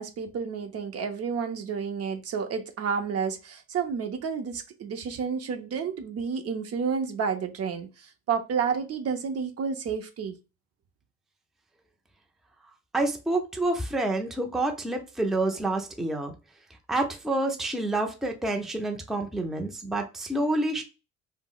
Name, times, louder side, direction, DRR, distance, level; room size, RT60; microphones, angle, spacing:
voice 1, 0.0-10.3, right 6 dB, 55° right, 0.6 m, -30 dB
voice 2, 12.9-16.3 16.9-20.8, right 2 dB, ahead, 0.4 m, -28 dB
2.2 x 2.0 x 3.7 m
cardioid pair, 90°, 30 cm